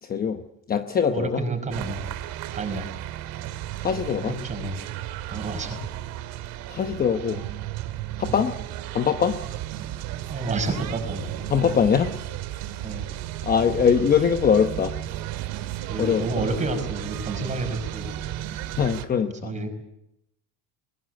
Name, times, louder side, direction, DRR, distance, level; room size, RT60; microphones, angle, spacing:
voice 1, 0.0-0.4 0.7-1.4 3.8-4.4 6.7-7.4 8.2-8.5 8.9-9.4 11.5-12.1 13.4-14.9 16.0-16.5 18.8-19.5, left 7 dB, 25° left, 7 dB, 0.9 m, -22 dB
voice 2, 1.1-2.1 2.5-3.0 4.2-4.8 5.3-5.8 8.3-8.4 10.3-11.3 11.6-11.7 12.8-13.2 15.9-18.3 19.4-19.7, right 3 dB, 20° right, 6 dB, 5.4 m, -30 dB
sound 1, 1.7-19.1, right 13 dB, 65° right, 2.0 m, -34 dB
22.0 x 21.0 x 8.0 m, 0.82 s
cardioid pair, 145°, 38 cm